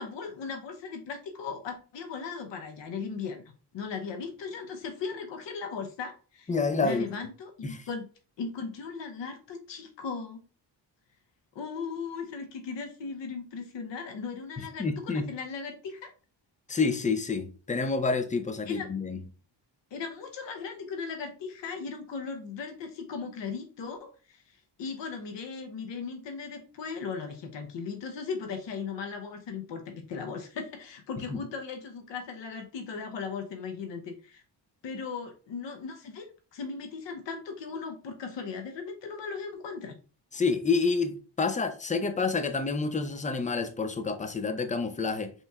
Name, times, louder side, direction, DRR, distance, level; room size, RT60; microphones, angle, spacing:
voice 1, 0.0-6.5 6.8-8.1 8.4-10.4 11.5-16.1 18.7-18.9 19.9-24.4 24.8-34.4 34.8-40.0, left 5 dB, 75° left, 0.8 m, -37 dB
voice 2, 6.5-7.1 7.6-7.8 14.8-15.3 16.7-19.2 31.3-31.4 40.3-45.3, left 4 dB, 20° left, 0.4 m, -28 dB
5.5 x 3.0 x 2.3 m
wide cardioid pair, 120°, 43 cm